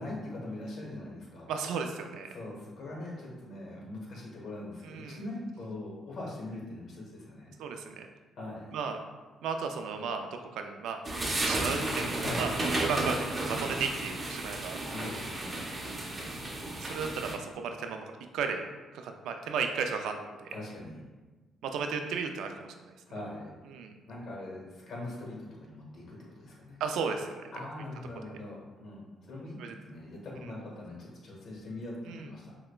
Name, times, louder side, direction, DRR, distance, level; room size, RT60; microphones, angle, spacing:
voice 1, 0.0-1.5 2.3-7.5 8.4-8.7 12.2-12.5 14.8-16.6 20.5-21.0 23.1-23.5 24.1-26.8 27.5-32.5, left 2 dB, 60° left, -3 dB, 1.2 m, -42 dB
voice 2, 1.5-2.3 4.8-5.2 7.6-8.1 8.7-9.0 9.4-11.0 11.4-12.5 12.8-14.8 16.8-18.0 18.3-18.6 18.9-20.5 21.6-22.9 23.7-23.9 26.8-27.7 28.3-28.4 29.6-29.8 32.1-32.3, right 5 dB, 85° right, 5 dB, 0.3 m, -34 dB
sound 1, 11.0-17.3, right 2 dB, 30° right, 0.6 m, -33 dB
5.7 x 2.1 x 2.3 m, 1.2 s
cardioid pair, 90°, 0 cm